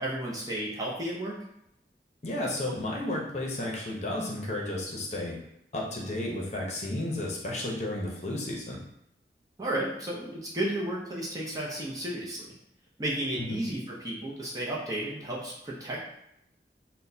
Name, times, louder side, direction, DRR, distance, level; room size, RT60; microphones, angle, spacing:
voice 1, 0.0-1.4 9.6-12.5 13.0-16.0, right 1 dB, 20° right, -4 dB, 0.6 m, -33 dB
voice 2, 2.2-5.3 5.7-8.8 13.4-13.7, left 1 dB, 40° left, -2 dB, 0.8 m, -32 dB
6.0 x 2.2 x 2.7 m, 0.78 s
head